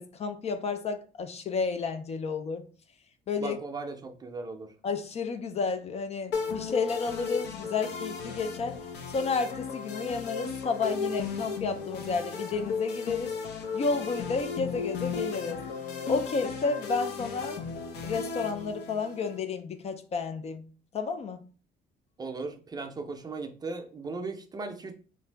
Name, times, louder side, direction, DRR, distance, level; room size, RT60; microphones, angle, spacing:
voice 1, 0.0-2.6 3.3-3.6 4.8-8.8 9.1-13.3 13.7-15.6 16.1-17.6 18.0-20.6 20.9-21.4, left 4 dB, 40° left, 0.4 m, -31 dB
voice 2, 3.4-4.7 22.2-24.9, right 3 dB, 25° right, 0.5 m, -37 dB
sound 1, 6.3-19.4, left 5 dB, 80° left, 0.7 m, -35 dB
2.8 x 2.6 x 3.3 m
cardioid pair, 110°, 17 cm